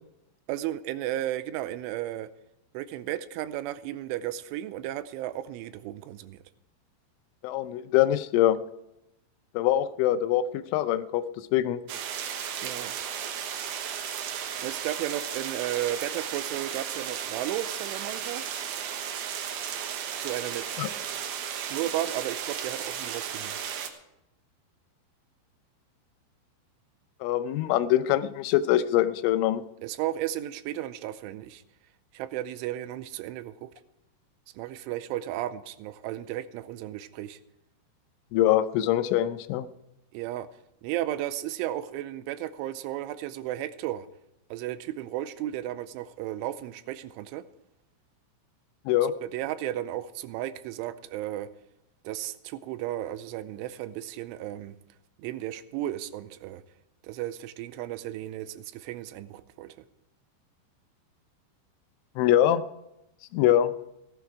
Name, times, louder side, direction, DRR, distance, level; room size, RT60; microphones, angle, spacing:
voice 1, 0.5-2.3 2.7-6.4 12.6-13.0 14.6-18.4 20.2-21.0 21.5-23.6 29.8-31.6 32.1-33.7 34.5-37.4 40.1-40.5 40.8-44.1 44.5-47.4 49.2-51.5 52.0-54.8 55.2-56.6 57.0-59.8, right 13 dB, 85° right, 13 dB, 3.1 m, -34 dB
voice 2, 7.4-8.6 9.5-10.4 10.7-11.2 11.5-11.8 20.8-20.9 27.2-29.6 38.3-39.7 48.9-49.1 62.2-62.6 63.3-63.7, left 12 dB, 85° left, 12 dB, 3.2 m, -23 dB
sound 1, 11.9-23.9, right 8 dB, 70° right, 2.7 m, -34 dB
16.5 x 11.5 x 4.8 m, 0.85 s
omnidirectional pair, 5.5 m